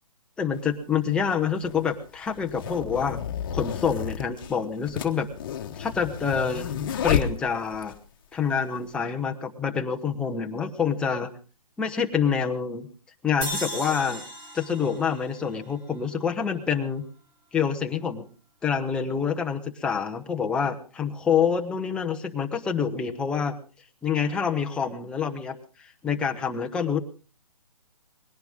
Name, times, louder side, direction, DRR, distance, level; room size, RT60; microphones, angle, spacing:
voice 1, 0.4-3.2 3.5-5.3 5.7-6.7 7.0-7.9 8.3-11.3 11.8-12.9 13.2-14.2 14.5-17.0 17.5-18.2 18.6-23.6 24.0-27.0, left 6 dB, 5° left, 3 dB, 0.9 m, -27 dB
sound 1, 0.5-0.6 1.6-8.0, left 8 dB, 35° left, 1.3 m, -31 dB
sound 2, 13.4-16.7, equal, 10° right, 2.7 m, -37 dB
20.5 x 17.5 x 3.6 m, 0.35 s
hypercardioid pair, 160°, 19 cm